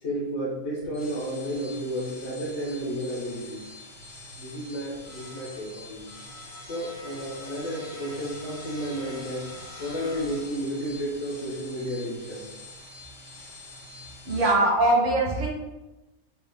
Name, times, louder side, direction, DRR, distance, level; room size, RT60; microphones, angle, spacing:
voice 1, 0.0-3.6 4.4-6.1 6.7-9.5 9.8-12.5, equal, 50° left, -5 dB, 1.0 m, -32 dB
sound 1, 0.8-14.5, left 2 dB, 85° left, 2.0 m, -44 dB
voice 2, 14.3-15.5, right 2 dB, 45° right, -2 dB, 0.7 m, -21 dB
4.4 x 2.0 x 3.5 m, 1.0 s
omnidirectional pair, 1.8 m